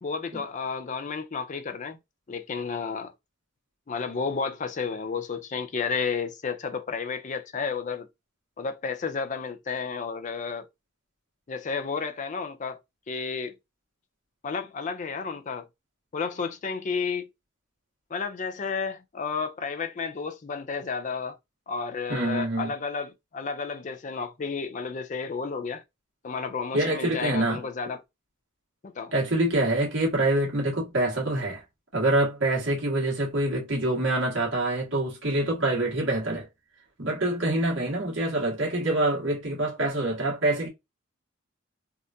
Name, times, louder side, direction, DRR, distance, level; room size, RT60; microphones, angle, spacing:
voice 1, 0.0-2.0 2.3-3.1 3.9-8.1 8.6-10.7 11.5-12.8 13.1-13.5 14.4-15.7 16.1-17.3 18.1-21.4 21.7-25.8 26.2-28.0 28.8-29.1, left 5 dB, 40° left, 0.4 m, -32 dB
voice 2, 22.1-22.7 26.7-27.7 29.1-31.6 31.9-36.5 37.0-40.7, right 1 dB, 65° right, 1.6 m, -26 dB
3.5 x 2.5 x 2.6 m
head